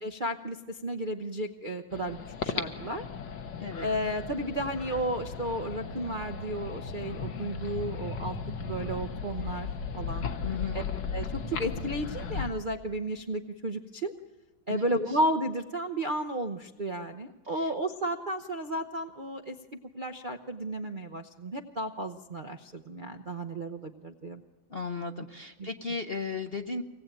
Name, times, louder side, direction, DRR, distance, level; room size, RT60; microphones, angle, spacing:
voice 1, 0.0-3.0 3.8-8.4 8.6-9.7 10.0-10.3 10.7-10.8 11.1-14.1 14.7-19.5 19.9-24.4 25.6-25.7, right 1 dB, 45° right, 6 dB, 0.6 m, -33 dB
sound 1, 1.9-12.5, left 5 dB, 65° left, 1.9 m, -36 dB
voice 2, 10.4-10.8 14.7-15.2 17.5-17.7 24.7-26.8, left 4 dB, 45° left, 6 dB, 0.8 m, -36 dB
24.5 x 19.0 x 9.0 m, 1.2 s
omnidirectional pair, 2.1 m